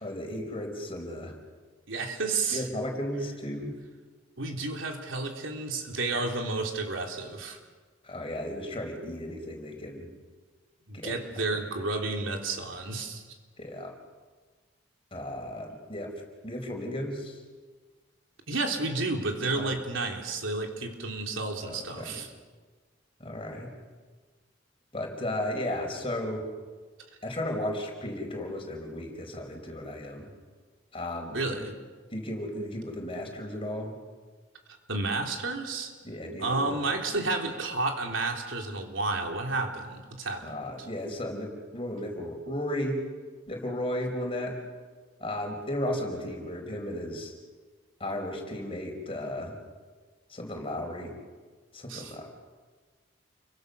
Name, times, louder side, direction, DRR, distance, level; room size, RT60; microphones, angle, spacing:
voice 1, 0.0-1.3 2.5-3.7 8.0-10.1 10.9-11.2 13.6-13.9 15.1-16.1 16.4-17.4 19.5-19.7 21.6-22.2 23.2-23.7 24.9-26.4 27.2-30.3 30.9-31.6 32.1-33.9 36.0-36.7 37.2-37.3 40.4-43.0 43.5-44.6 45.2-47.3 48.0-49.5 50.3-51.2 51.7-52.3, left 1 dB, 30° left, 2 dB, 4.7 m, -34 dB
voice 2, 1.9-2.6 4.4-7.6 10.9-13.2 18.5-22.3 31.3-31.7 34.9-35.9 36.4-40.5 51.9-52.1, right 3 dB, 80° right, 2 dB, 3.4 m, -31 dB
29.0 x 24.0 x 6.8 m, 1.4 s
head